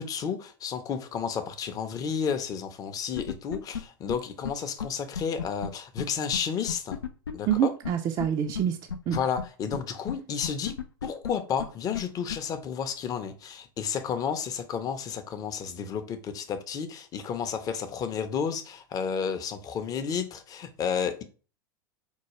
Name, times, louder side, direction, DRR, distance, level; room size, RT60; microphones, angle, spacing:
voice 1, 0.0-7.0 7.3-7.7 9.1-10.7 11.0-21.2, left 7 dB, 30° left, 0.6 m, -31 dB
sound 1, 3.1-3.8 4.1-4.2 4.4-4.5 4.8-4.9 5.1-5.7 6.0-6.1 6.3-6.4 6.7-7.5 7.8-7.9 8.2-8.3 8.5-8.6 8.9-9.4 9.7-9.8 10.1-10.2 10.4-11.3 11.6-11.7 11.9-12.0 12.3-12.4, left 7 dB, 90° left, 0.4 m, -32 dB
voice 2, 7.5-8.8 9.1-9.2, right 10 dB, 35° right, 0.4 m, -26 dB
4.5 x 2.3 x 3.0 m
hypercardioid pair, 85°, 12 cm